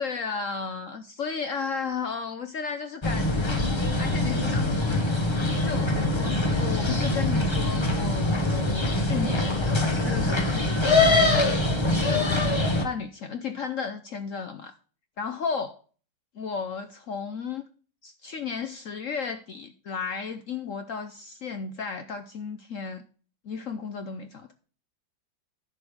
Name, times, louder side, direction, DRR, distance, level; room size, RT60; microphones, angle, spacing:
voice 1, 0.0-3.6 4.0-5.0 5.6-11.4 11.9-14.7 15.2-15.7 16.3-17.6 18.0-23.0 23.4-24.5, left 5 dB, 65° left, 0.8 m, -34 dB
sound 1, 3.0-12.8, left 2 dB, 20° left, 0.8 m, -24 dB
10.5 x 6.3 x 5.0 m
omnidirectional pair, 2.1 m